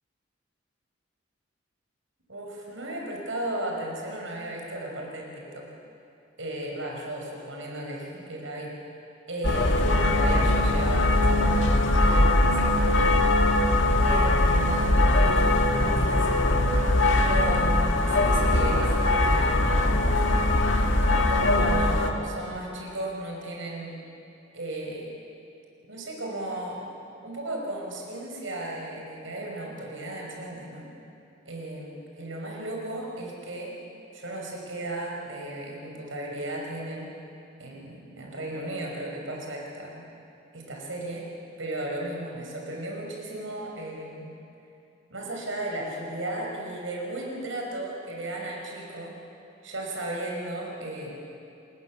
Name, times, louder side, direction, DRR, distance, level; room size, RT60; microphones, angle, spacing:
voice 1, 2.3-5.7 6.4-8.7 9.3-13.1 14.0-16.3 16.8-20.2 21.0-24.0 24.5-25.1 25.9-26.8 27.2-30.9 31.5-33.7 34.1-37.1 37.6-40.0 40.5-41.3 41.6-44.3 45.1-49.1 49.6-51.1, right 1 dB, 80° right, -1 dB, 5.7 m, -35 dB
sound 1, 9.4-22.1, left 1 dB, 75° left, 1.9 m, -21 dB
28.0 x 20.0 x 7.4 m, 2.7 s
head